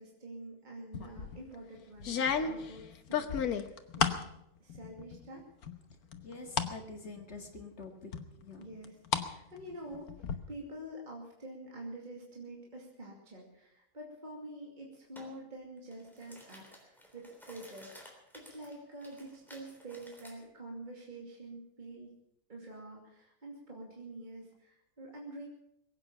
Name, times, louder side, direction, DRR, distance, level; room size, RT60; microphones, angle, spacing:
voice 1, 0.0-3.5 4.0-4.1 4.6-5.4 8.6-10.1 10.5-22.1 22.5-25.5, right 1 dB, 30° right, -2 dB, 2.7 m, -47 dB
sound 1, 0.9-1.4 2.0-4.3 4.7-5.3 5.6-6.7 7.2-7.3 8.1-9.3 9.6-10.3, left 7 dB, 90° left, 1.5 m, -33 dB
voice 2, 6.2-8.7, left 3 dB, 50° left, 4 dB, 2.1 m, -47 dB
sound 2, 15.2-15.3 15.8-20.4, equal, ahead, 3.5 m, -55 dB
21.5 x 9.0 x 7.0 m, 0.78 s
omnidirectional pair, 1.5 m